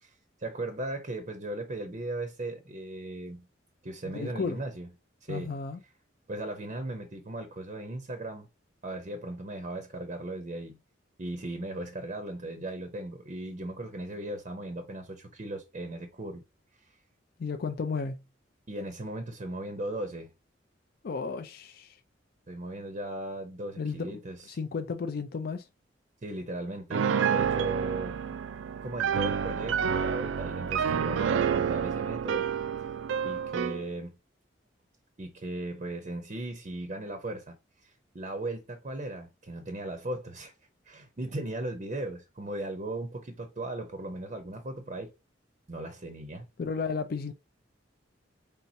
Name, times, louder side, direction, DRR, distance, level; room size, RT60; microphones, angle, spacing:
voice 1, 0.0-3.5 3.8-4.9 5.2-5.6 6.3-8.5 8.8-10.8 11.2-16.4 16.7-17.0 18.7-20.3 22.5-24.6 26.2-28.4 28.8-32.5 33.2-34.2 35.2-37.6 37.8-40.5 40.8-45.1 45.7-46.4, right 2 dB, 40° right, 0.6 m, -37 dB
voice 2, 4.1-4.6 5.3-5.8 17.4-18.2 21.0-22.0 23.8-24.2 24.5-25.7 46.6-47.3, left 5 dB, 50° left, 0.4 m, -33 dB
Piano, 26.9-33.8, right 7 dB, 80° right, 0.4 m, -29 dB
4.2 x 3.3 x 2.7 m
head